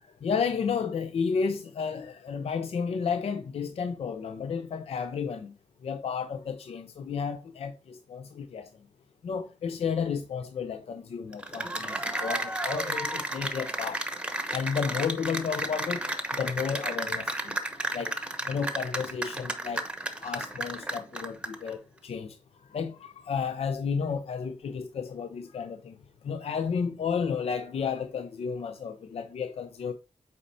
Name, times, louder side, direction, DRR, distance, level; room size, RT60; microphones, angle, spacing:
voice 1, 0.2-5.5 5.8-8.7 9.2-14.0 14.5-16.0 16.3-17.5 17.9-18.1 18.5-19.8 20.2-22.4 22.7-25.9 26.2-29.9, left 6 dB, 55° left, 0.5 m, -32 dB
Cheering / Applause, 11.3-21.7, right 1 dB, 10° right, 0.9 m, -33 dB
8.3 x 4.3 x 2.7 m
cardioid pair, 95°, 12 cm